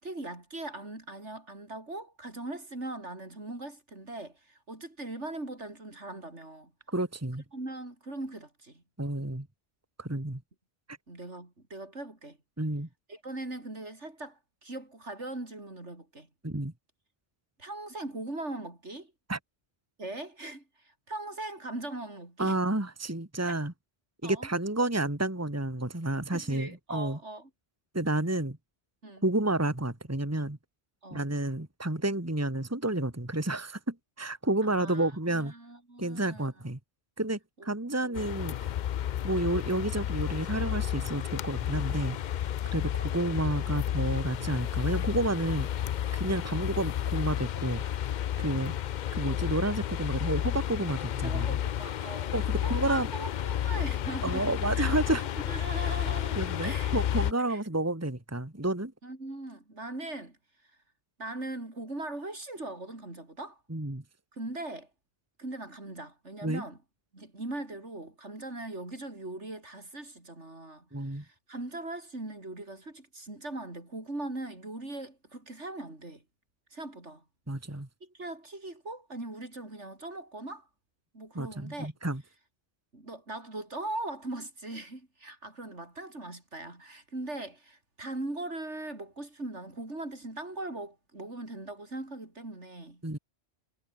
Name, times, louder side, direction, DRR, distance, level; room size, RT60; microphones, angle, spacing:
voice 1, 0.0-6.7 7.5-8.8 11.1-12.4 13.1-16.3 17.6-19.1 20.0-22.6 24.2-24.5 26.3-27.5 29.0-29.3 31.0-31.3 34.6-36.5 37.6-38.2 42.7-42.9 46.3-46.5 48.4-48.7 51.2-55.0 55.5-57.0 57.5-57.6 59.0-60.4 61.2-63.6 64.3-64.9 65.4-66.8 67.1-70.9 71.1-76.2 76.7-77.2 78.0-80.7 81.1-81.9 82.9-93.0, right 2 dB, 75° right, 5.6 m, -40 dB
voice 2, 6.9-7.4 9.0-9.5 10.0-10.4 10.9-11.0 12.6-12.9 16.4-16.7 19.3-19.4 22.4-23.7 24.2-27.2 27.9-28.6 29.2-30.6 31.1-35.5 36.0-36.8 37.2-38.6 39.2-42.2 42.7-45.7 46.1-47.8 48.4-48.7 49.1-51.5 52.3-53.1 54.2-55.2 56.4-58.9 63.7-64.0 66.4-66.6 70.9-71.2 77.5-77.9 81.4-82.2 93.0-93.2, right 2 dB, 10° right, 2.2 m, -30 dB
sound 1, 38.1-57.3, left 11 dB, 60° left, 0.5 m, -31 dB
omnidirectional pair, 1.2 m